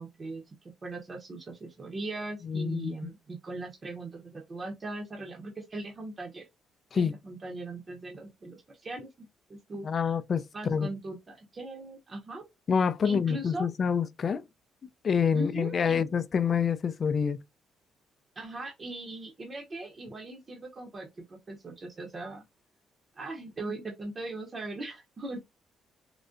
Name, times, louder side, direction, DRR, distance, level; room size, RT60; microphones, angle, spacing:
voice 1, 0.0-6.4 6.9-10.1 10.5-12.4 13.0-13.7 15.3-16.0 18.4-22.4 23.2-25.4, right 2 dB, 35° right, 0.7 m, -39 dB
voice 2, 2.4-2.9 6.9-7.1 9.8-10.9 12.7-14.4 15.0-17.4, left 6 dB, 45° left, 0.3 m, -27 dB
3.7 x 2.1 x 2.5 m
cardioid pair, 90°, 0 cm